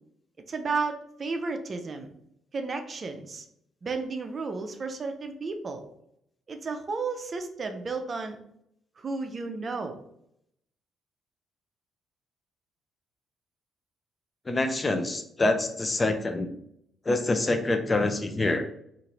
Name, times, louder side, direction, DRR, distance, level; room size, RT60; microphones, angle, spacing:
voice 1, 0.5-2.1 2.5-3.5 3.8-5.8 6.5-8.4 9.0-10.0, right 4 dB, 45° right, 6 dB, 0.4 m, -33 dB
voice 2, 14.5-16.5 17.1-18.7, left 2 dB, 30° left, 7 dB, 0.4 m, -26 dB
2.7 x 2.5 x 3.0 m, 0.74 s
hypercardioid pair, 45°, 0 cm